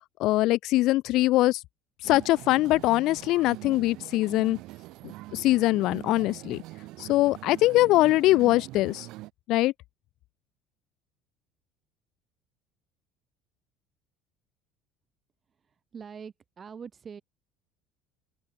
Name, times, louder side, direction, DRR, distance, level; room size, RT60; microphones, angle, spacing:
voice 1, 0.2-1.6 2.0-4.6 5.3-6.6 7.0-9.1 9.5-9.7, left 17 dB, 50° left, 0.3 m, -22 dB
sound 1, 2.0-9.3, right 19 dB, 55° right, 3.9 m, -43 dB
voice 2, 15.6-17.2, right 6 dB, 20° right, 5.7 m, -44 dB
open air
cardioid pair, 170°, 0 cm